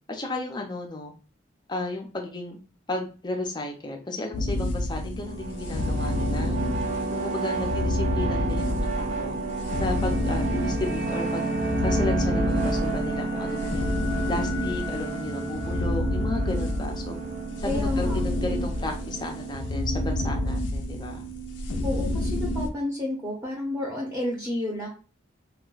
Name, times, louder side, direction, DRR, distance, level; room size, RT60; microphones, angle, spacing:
voice 1, 0.1-1.1 1.7-2.6 2.9-6.6 7.1-9.4 9.8-11.5 11.8-13.9 14.3-17.2 17.6-21.3, left 2 dB, 25° left, 2 dB, 0.5 m, -33 dB
sound 1, 4.3-22.7, left 1 dB, 80° left, 0.4 m, -29 dB
sound 2, 5.2-20.6, right 2 dB, 40° right, 0.4 m, -32 dB
sound 3, 9.4-17.7 18.0-18.2, left 5 dB, 70° right, 1.0 m, -42 dB
voice 2, 17.6-18.2 21.8-24.9, left 1 dB, 10° right, -3 dB, 0.7 m, -30 dB
2.3 x 2.2 x 3.8 m, 0.36 s
head